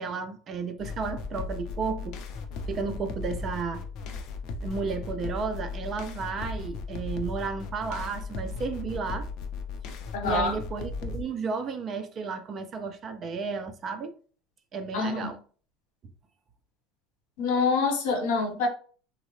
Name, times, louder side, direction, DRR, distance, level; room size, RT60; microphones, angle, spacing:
voice 1, 0.0-2.2 2.7-3.8 4.6-9.3 10.2-14.1 14.7-15.4, right 5 dB, 30° right, 0.4 m, -33 dB
sound 1, 0.8-11.2, left 4 dB, 50° left, 0.5 m, -36 dB
voice 2, 10.1-10.5 14.9-15.3 17.4-18.7, left 4 dB, 80° left, 1.0 m, -26 dB
3.6 x 2.0 x 3.1 m
cardioid pair, 160°, 0 cm